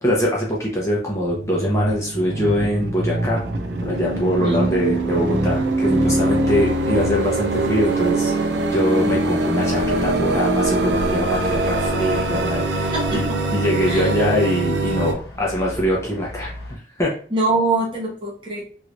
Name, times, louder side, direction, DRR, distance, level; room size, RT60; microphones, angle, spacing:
voice 1, 0.0-3.4 3.8-13.3 13.5-17.1, equal, 15° left, -4 dB, 0.7 m, -23 dB
sound 1, 1.1-15.1, right 2 dB, 85° right, 0.6 m, -22 dB
sound 2, 9.7-16.8, equal, 65° left, 0.8 m, -35 dB
voice 2, 12.9-13.4 13.9-14.1 17.3-18.6, right 2 dB, 30° right, -3 dB, 0.9 m, -24 dB
3.1 x 3.1 x 2.5 m, 0.42 s
head